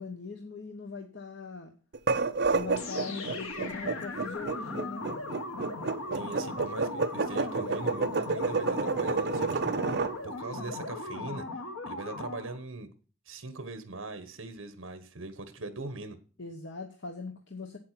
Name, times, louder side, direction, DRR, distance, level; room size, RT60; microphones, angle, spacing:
voice 1, 0.0-1.7 2.5-5.3 16.4-17.8, left 4 dB, 60° left, 4 dB, 1.1 m, -40 dB
sound 1, 1.9-10.1, right 4 dB, 50° right, 0.6 m, -29 dB
sound 2, 2.8-12.6, left 2 dB, 85° left, 1.5 m, -38 dB
voice 2, 6.1-9.5 9.9-11.4 11.9-12.9 13.3-16.2, right 2 dB, 65° right, 10 dB, 1.2 m, -41 dB
8.6 x 7.6 x 5.9 m, 0.37 s
head